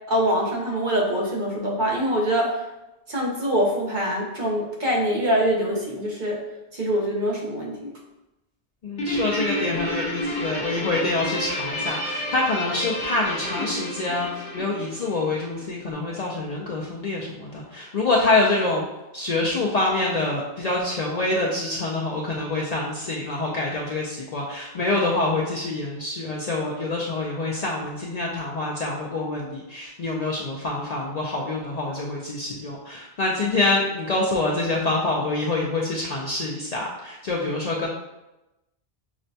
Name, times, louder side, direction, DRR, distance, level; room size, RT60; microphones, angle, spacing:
voice 1, 0.1-2.6 3.1-6.4 6.7-8.0, equal, 50° right, -3 dB, 0.8 m, -24 dB
voice 2, 8.8-18.8 19.1-37.9, left 2 dB, 55° left, -4 dB, 0.4 m, -26 dB
Guitar, 9.0-15.7, left 1 dB, 85° left, 1.0 m, -30 dB
5.9 x 2.1 x 2.6 m, 0.97 s
omnidirectional pair, 1.1 m